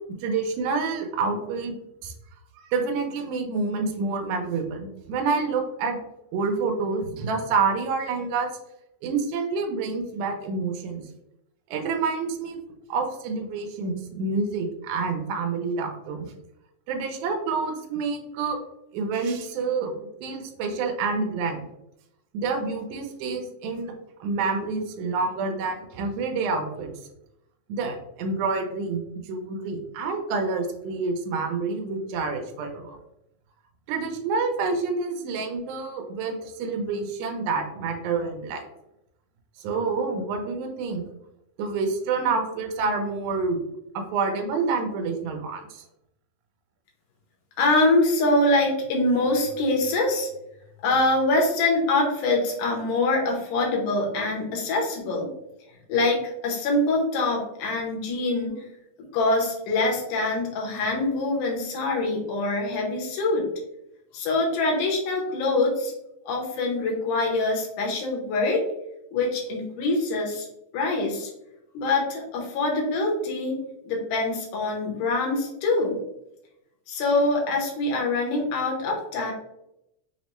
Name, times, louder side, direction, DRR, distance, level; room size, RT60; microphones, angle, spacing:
voice 1, 0.1-1.8 2.0-2.1 2.6-6.0 6.3-8.5 9.0-11.0 11.7-12.6 12.9-16.3 16.9-18.6 18.9-21.6 22.3-23.9 24.2-26.9 27.7-33.0 33.9-38.6 39.6-41.0 41.6-43.6 43.9-45.8, right 4 dB, 80° right, 4 dB, 2.0 m, -28 dB
voice 2, 47.6-50.3 50.8-55.3 55.9-58.7 59.1-63.5 64.1-65.9 66.3-68.6 69.1-70.5 70.7-71.3 71.7-73.6 73.8-76.0 76.9-79.3, left 2 dB, 80° left, -1 dB, 2.4 m, -24 dB
5.6 x 2.0 x 2.9 m, 0.83 s
omnidirectional pair, 3.5 m